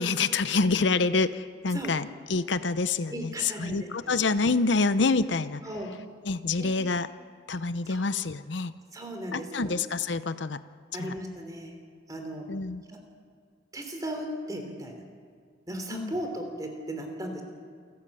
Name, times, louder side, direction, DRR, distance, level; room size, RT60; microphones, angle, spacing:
voice 1, 0.0-5.6 6.2-7.1 7.5-8.7 9.3-10.6 11.0-11.1 12.5-12.8 15.9-16.1, left 4 dB, 70° left, 13 dB, 0.7 m, -27 dB
voice 2, 3.1-4.2 5.6-5.9 6.6-6.9 7.9-8.1 8.9-9.7 10.9-11.7 12.1-12.5 12.9-13.0 13.7-15.1 15.7-17.4, right 1 dB, 20° right, 4 dB, 3.4 m, -36 dB
28.0 x 13.0 x 8.5 m, 2.1 s
head